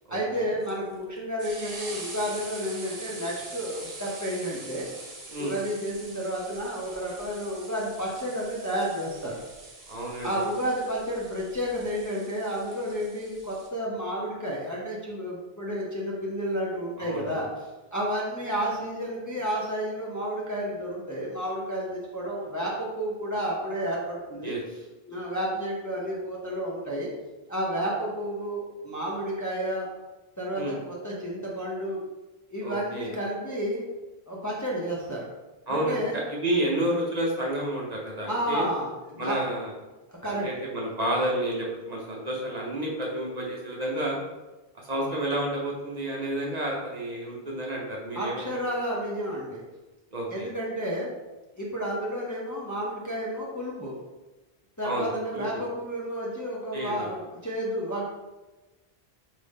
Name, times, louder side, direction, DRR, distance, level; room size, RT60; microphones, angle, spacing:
voice 1, 0.1-4.9 5.4-9.4 10.2-17.5 17.9-24.8 25.1-27.1 27.5-29.9 30.4-32.0 32.5-33.8 34.3-35.3 35.7-36.2 38.3-39.4 40.1-40.5 48.1-49.6 50.3-51.1 51.5-53.9 54.8-58.0, equal, 20° left, -5 dB, 0.6 m, -31 dB
sound 1, 0.6-13.7, right 2 dB, 60° right, 1.1 m, -44 dB
voice 2, 9.9-10.5 17.0-17.4 24.4-24.6 30.5-30.8 32.6-33.1 35.7-38.6 39.2-39.7 40.3-44.2 44.7-48.4 50.1-50.5 54.8-55.5 56.7-57.1, right 1 dB, 45° right, -2 dB, 0.8 m, -30 dB
5.0 x 2.7 x 3.5 m, 1.1 s
omnidirectional pair, 1.0 m